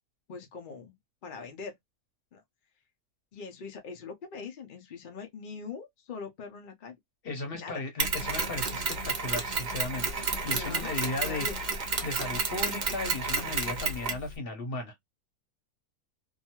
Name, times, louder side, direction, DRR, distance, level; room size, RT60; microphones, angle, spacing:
voice 1, 0.3-0.9 1.2-1.7 2.3-2.4 3.3-7.0 7.5-7.8 10.5-11.0 11.3-11.6, left 5 dB, 65° left, 0.5 m, -42 dB
voice 2, 7.2-11.5 12.0-15.0, left 2 dB, 45° left, 0.9 m, -36 dB
Mechanisms, 8.0-14.3, right 4 dB, 45° right, 0.6 m, -31 dB
2.6 x 2.3 x 2.8 m
omnidirectional pair, 1.6 m